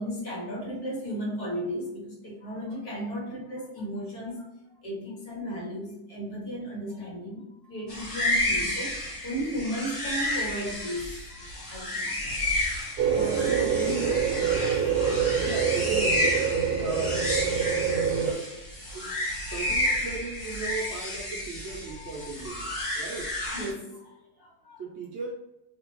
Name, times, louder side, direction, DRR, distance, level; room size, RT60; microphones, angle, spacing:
voice 1, 0.0-4.4 4.8-11.1 11.3-12.2 13.0-14.3 14.6-14.8 15.4-15.5 18.3-18.5 19.3-20.0 20.7-21.0 22.0-22.3 23.5-24.8, equal, 80° left, -5 dB, 2.0 m, -35 dB
sound 1, 7.9-23.7, left 1 dB, 50° left, 1.8 m, -31 dB
sound 2, 13.0-18.3, right 7 dB, 85° right, 1.1 m, -26 dB
voice 2, 15.3-16.4 16.8-17.5 18.2-18.5 18.9-19.1 19.5-23.4 24.8-25.3, right 4 dB, 60° right, -2 dB, 0.8 m, -37 dB
3.3 x 2.8 x 3.0 m, 0.90 s
omnidirectional pair, 1.6 m